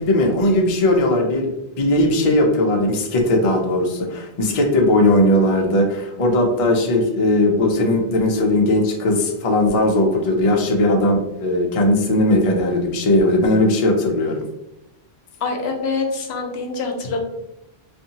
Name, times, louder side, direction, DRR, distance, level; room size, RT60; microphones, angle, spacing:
voice 1, 0.0-1.5 1.8-14.4, left 1 dB, 50° left, 1 dB, 0.4 m, -18 dB
voice 2, 15.4-17.2, left 4 dB, 75° left, 3 dB, 0.8 m, -25 dB
2.6 x 2.5 x 2.7 m, 0.88 s
omnidirectional pair, 1.1 m